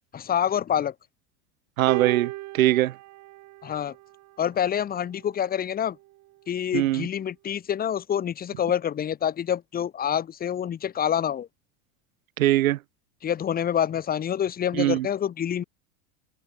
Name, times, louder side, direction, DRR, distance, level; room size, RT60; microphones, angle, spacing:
voice 1, 0.1-0.9 3.6-3.9 4.4-6.0 6.5-11.5 13.2-15.6, left 9 dB, 20° left, 1.2 m, -27 dB
voice 2, 1.8-3.0 6.7-7.1 12.4-12.8 14.7-15.1, right 15 dB, 90° right, 3.9 m, -22 dB
sound 1, 1.9-4.4 5.4-5.5, right 19 dB, 45° right, 2.4 m, -34 dB
open air
supercardioid pair, 130°, 40 cm